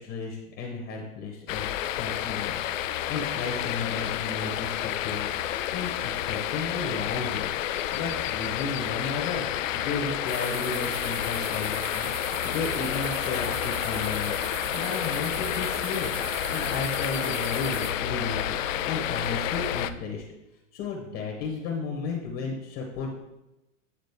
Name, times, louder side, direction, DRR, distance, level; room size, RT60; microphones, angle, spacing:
voice 1, 0.0-1.7 2.0-2.6 2.8-7.5 7.9-9.5 9.7-14.3 14.7-16.2 16.5-20.2 20.7-23.2, left 4 dB, 35° left, 0 dB, 1.2 m, -34 dB
sound 1, 1.5-19.9, left 11 dB, 80° left, 0.5 m, -30 dB
sound 2, 10.3-17.9, right 7 dB, 25° right, 0.6 m, -39 dB
8.7 x 3.6 x 3.6 m, 0.93 s
hypercardioid pair, 130°, 38 cm